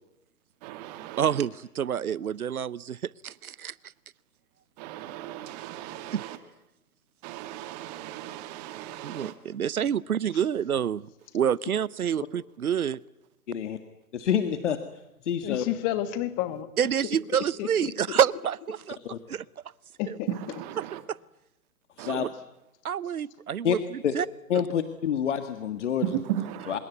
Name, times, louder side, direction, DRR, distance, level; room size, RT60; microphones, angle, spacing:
voice 1, 0.6-1.4 4.8-6.4 7.2-9.3 20.3-21.0 22.0-22.3 26.0-26.8, right 12 dB, 25° right, 2.0 m, -35 dB
voice 2, 1.2-3.7 6.1-6.3 9.0-11.0 11.3-13.0 16.8-19.0 19.3-19.4 20.1-20.2 21.1-21.2 22.0-22.3 22.8-24.3, right 8 dB, 70° right, 0.9 m, -28 dB
voice 3, 13.5-13.8 14.1-14.8 15.3-15.6 19.1-19.2 22.1-22.3 23.6-23.8 24.0-24.2 24.5-26.2 26.7-26.8, left 8 dB, 50° left, 1.9 m, -27 dB
voice 4, 15.4-16.7 17.3-18.2 20.0-20.3, left 12 dB, 20° left, 1.4 m, -31 dB
25.5 x 22.0 x 9.5 m
figure-of-eight pair, 135°, 45 cm